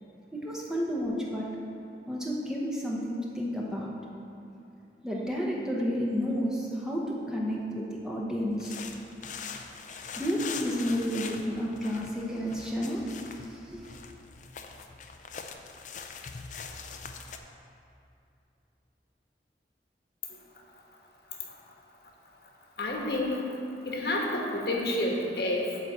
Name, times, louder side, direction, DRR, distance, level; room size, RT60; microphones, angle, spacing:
voice 1, 0.3-1.5 2.1-4.0 5.0-8.7 10.1-14.0, equal, 5° right, -4 dB, 0.8 m, -31 dB
sound 1, 8.5-17.4, left 5 dB, 45° left, 0.5 m, -42 dB
voice 2, 22.8-23.5 23.8-25.8, left 1 dB, 65° left, -1 dB, 1.2 m, -29 dB
9.1 x 4.1 x 7.2 m, 2.7 s
head